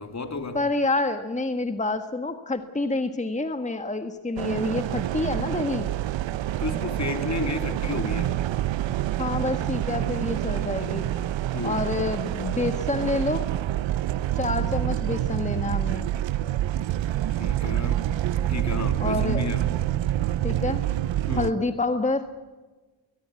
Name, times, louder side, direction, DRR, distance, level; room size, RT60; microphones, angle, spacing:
voice 1, 0.0-0.6 6.5-8.4 11.5-11.8 14.6-15.0 17.3-18.1 18.4-19.7 21.3-21.6, left 3 dB, 35° left, 6 dB, 3.4 m, -32 dB
voice 2, 0.5-5.9 9.2-11.1 11.6-13.5 14.3-16.1 19.0-19.5 20.4-20.8 21.4-22.3, left 2 dB, 15° left, 8 dB, 1.6 m, -28 dB
sound 1, 4.4-21.5, right 13 dB, 65° right, 0.8 m, -27 dB
22.0 x 20.0 x 8.4 m, 1.2 s
cardioid pair, 70°, 49 cm